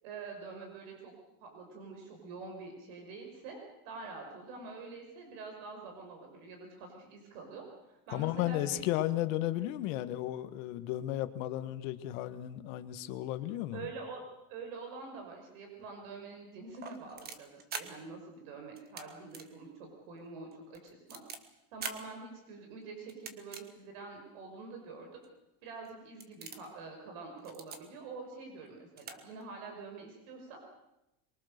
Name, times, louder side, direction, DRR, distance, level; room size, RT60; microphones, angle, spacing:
voice 1, 0.0-1.1 1.4-3.6 3.8-9.0 13.4-14.2 14.5-21.2 21.7-25.1 25.6-30.7, right 4 dB, 60° right, 2 dB, 5.8 m, -46 dB
voice 2, 8.1-13.9, left 14 dB, 60° left, 10 dB, 1.6 m, -34 dB
sound 1, 16.7-17.8 18.8-19.0 19.3-19.5 19.8-19.9 20.5-21.4 21.8-22.0 23.1-23.6 24.3-24.4 25.2-25.3 25.8-25.9 26.2-26.7 27.4-27.8 28.7-28.8 29.0-29.2 29.4-29.5, right 5 dB, 20° right, 1.5 m, -42 dB
24.5 x 23.5 x 6.7 m, 0.91 s
cardioid pair, 180°, 44 cm